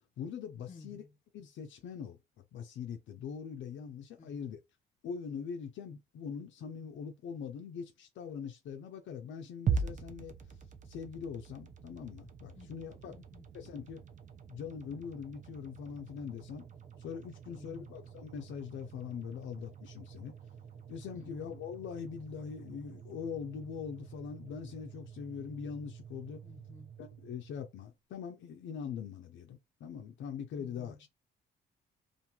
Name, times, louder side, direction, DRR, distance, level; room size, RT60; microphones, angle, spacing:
voice 1, 0.2-1.0 1.3-2.2 2.5-4.6 5.0-10.3 10.8-13.2 13.5-14.0 14.5-16.7 17.0-20.3 20.9-26.4 27.0-31.1, left 7 dB, 70° left, 0.5 m, -42 dB
voice 2, 0.7-1.1 4.2-4.5 12.5-12.7 13.1-13.5 17.5-17.9 19.3-19.5 21.1-21.6 26.4-27.0 30.5-31.1, left 4 dB, 40° left, 0.7 m, -53 dB
sound 1, 9.7-27.9, right 6 dB, 40° right, 0.5 m, -43 dB
2.5 x 2.3 x 2.8 m
cardioid pair, 90°, 20 cm